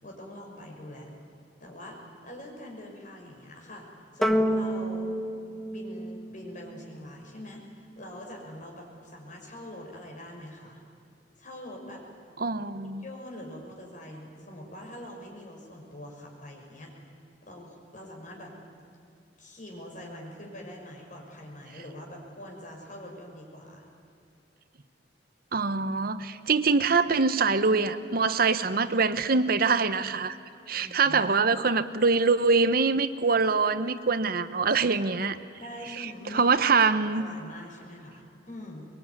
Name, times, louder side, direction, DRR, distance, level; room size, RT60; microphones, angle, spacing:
voice 1, 0.0-1.1 1.6-3.9 4.1-5.1 5.7-10.8 11.4-12.0 13.0-16.9 17.4-18.5 19.4-23.9 30.8-31.4 35.6-36.6 37.1-38.9, left 1 dB, 45° left, 0 dB, 6.2 m, -44 dB
sound 1, 4.2-6.8, equal, ahead, 1.1 m, -28 dB
voice 2, 12.4-13.0 25.5-30.4 30.7-35.4 36.0-37.3, right 4 dB, 55° right, 12 dB, 0.9 m, -24 dB
24.0 x 22.5 x 9.7 m, 2.5 s
head